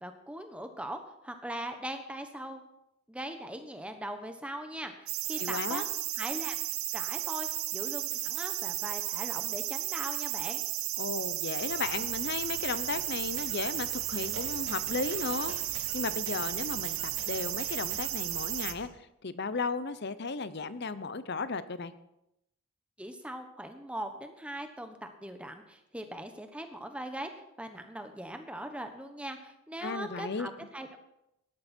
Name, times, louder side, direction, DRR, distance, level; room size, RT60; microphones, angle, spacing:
voice 1, 0.0-2.6 3.1-5.8 6.2-6.6 6.9-10.6 23.0-27.3 27.6-31.0, right 1 dB, 5° right, 6 dB, 1.2 m, -40 dB
sound 1, 5.1-18.7, right 15 dB, 80° right, 0.9 m, -34 dB
voice 2, 5.4-5.8 11.0-18.9 19.2-21.9 29.8-30.5, left 4 dB, 50° left, 14 dB, 0.8 m, -35 dB
sound 2, 11.5-18.9, right 3 dB, 60° right, 3.3 m, -48 dB
17.5 x 12.0 x 4.5 m, 0.86 s
head